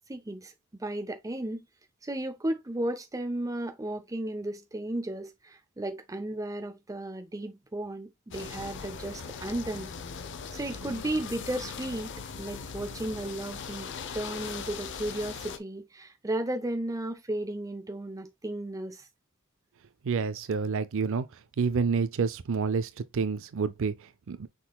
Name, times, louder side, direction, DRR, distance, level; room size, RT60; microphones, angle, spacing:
voice 1, 0.1-0.5 0.8-1.6 2.0-9.9 10.5-12.1 12.4-19.1, right 1 dB, 15° right, 0.6 m, -34 dB
sound 1, 8.3-15.6, left 5 dB, 55° left, 0.6 m, -40 dB
voice 2, 20.0-21.3 21.6-24.5, right 5 dB, 65° right, 0.4 m, -29 dB
6.1 x 3.8 x 2.2 m
head